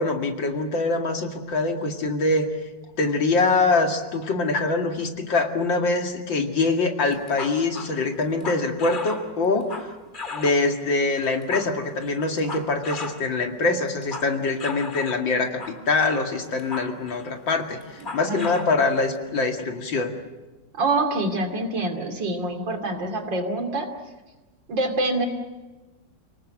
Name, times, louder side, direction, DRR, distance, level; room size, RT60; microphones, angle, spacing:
voice 1, 0.0-2.5 3.0-9.9 10.3-20.1, left 3 dB, 85° left, 4 dB, 3.0 m, -24 dB
sound 1, 7.1-10.7 11.2-13.3 13.6-15.3 15.6-16.0 16.4-17.4 17.8-18.8, left 3 dB, 25° left, 2.1 m, -36 dB
voice 2, 18.0-18.5 20.8-23.9 24.7-25.3, right 2 dB, 75° right, 5 dB, 3.5 m, -26 dB
29.0 x 19.0 x 7.7 m, 1.2 s
omnidirectional pair, 2.0 m